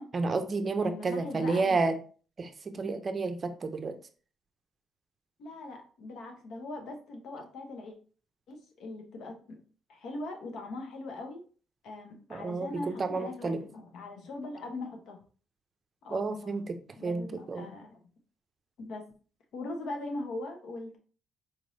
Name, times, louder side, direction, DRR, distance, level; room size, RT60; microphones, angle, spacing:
voice 1, 0.1-2.0 2.4-4.0 12.3-13.6 16.1-17.7, right 3 dB, 40° right, 8 dB, 0.5 m, -31 dB
voice 2, 0.8-1.8 5.4-7.9 8.5-9.6 9.9-11.4 11.8-15.2 16.0-16.5 17.0-18.0 18.8-19.0 19.5-21.0, left 2 dB, 75° left, 3 dB, 0.9 m, -41 dB
4.3 x 3.1 x 2.6 m, 0.39 s
cardioid pair, 90°, 0 cm